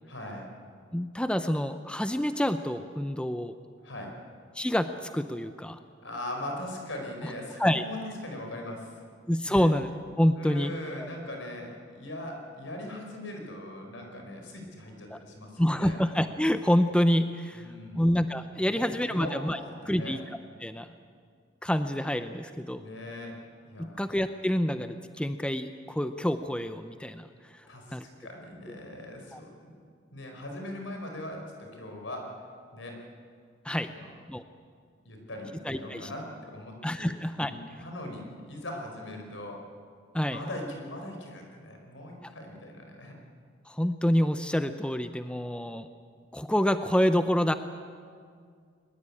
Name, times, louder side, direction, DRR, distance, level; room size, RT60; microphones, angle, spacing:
voice 1, 0.1-0.5 3.8-4.2 6.0-9.0 9.4-9.7 10.4-16.0 17.5-18.0 18.5-20.2 22.7-24.0 27.7-29.8 30.1-32.4 32.7-33.1 33.9-34.1 35.0-37.1 37.4-39.7 40.3-43.2, left 1 dB, 80° left, 2 dB, 4.8 m, -40 dB
voice 2, 0.9-3.5 4.5-5.8 7.2-7.3 7.6-7.8 9.3-9.9 10.2-10.7 11.0-11.1 15.1-15.2 15.6-17.7 17.9-19.6 19.9-20.2 20.6-20.9 21.6-22.8 23.8-27.3 27.9-28.0 29.3-29.4 33.6-33.9 34.3-34.4 35.6-36.1 36.8-37.5 40.1-40.4 42.2-42.3 43.7-45.9 46.3-47.5, equal, 5° left, 9 dB, 0.6 m, -27 dB
22.0 x 20.5 x 8.6 m, 2.1 s
head